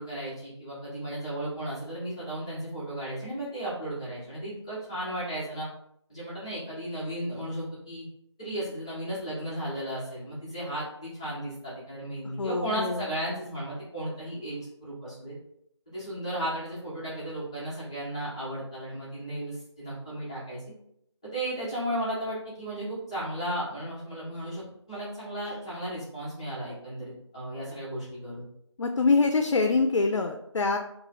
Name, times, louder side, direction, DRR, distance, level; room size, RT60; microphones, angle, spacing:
voice 1, 0.0-5.7 6.1-8.0 8.4-15.3 15.9-20.6 21.2-28.4, right 1 dB, 10° left, -11 dB, 0.6 m, -35 dB
voice 2, 12.4-13.0 28.8-30.8, left 3 dB, 80° left, 5 dB, 0.4 m, -24 dB
2.3 x 2.0 x 3.9 m, 0.74 s
figure-of-eight pair, 170°, 15 cm